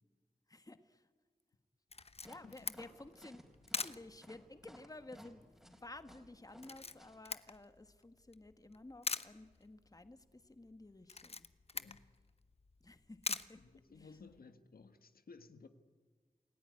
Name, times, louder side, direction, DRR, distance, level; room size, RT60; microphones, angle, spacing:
voice 1, 0.5-1.1 2.2-3.5 3.8-11.5 12.8-13.6 14.0-14.1, left 2 dB, 25° left, 1.4 m, -54 dB
Camera, 1.9-14.4, left 4 dB, 45° left, 0.9 m, -46 dB
sound 1, 2.2-7.2, equal, ahead, 4.4 m, -58 dB
voice 2, 11.7-12.0 13.6-15.7, left 4 dB, 85° left, 1.5 m, -57 dB
28.5 x 17.0 x 9.8 m
wide cardioid pair, 75°, 15 cm